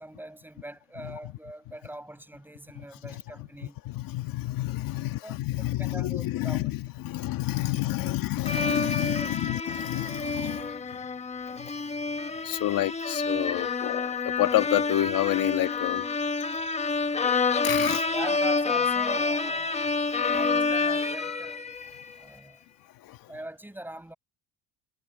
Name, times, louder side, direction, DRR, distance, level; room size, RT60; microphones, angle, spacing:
voice 1, 0.0-3.8 4.8-6.7 8.0-8.2 9.0-9.5 18.0-19.9 20.3-21.6 22.2-22.6 23.3-24.1, right 1 dB, 5° right, 7.7 m, -42 dB
voice 2, 2.8-3.5 3.9-11.0 11.6-11.7 12.4-16.0 17.6-18.0 23.0-23.2, left 15 dB, 65° left, 2.0 m, -29 dB
sound 1, 8.5-22.1, left 4 dB, 15° left, 1.3 m, -28 dB
sound 2, 17.8-18.2 21.2-21.6, left 9 dB, 45° left, 5.3 m, -42 dB
cardioid pair, 105°, 37 cm